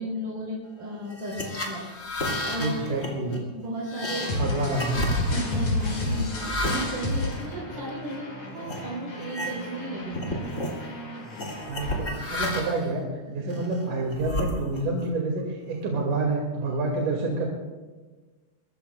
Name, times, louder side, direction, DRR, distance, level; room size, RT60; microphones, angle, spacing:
voice 1, 0.0-1.9 2.5-3.0 3.3-4.5 4.9-10.4, equal, 55° right, -5 dB, 4.0 m, -35 dB
sound 1, 1.1-8.1 8.6-8.8 9.2-9.9 10.1-10.8 11.4-12.9 13.5-15.0, left 1 dB, 25° left, 2.3 m, -33 dB
voice 2, 2.6-3.4 4.4-5.1 11.7-13.0 13.3-17.5, right 2 dB, 70° right, -1 dB, 3.7 m, -28 dB
sound 2, 4.1-12.0, left 1 dB, 55° left, 6.3 m, -31 dB
23.5 x 22.5 x 2.3 m, 1.3 s
omnidirectional pair, 3.8 m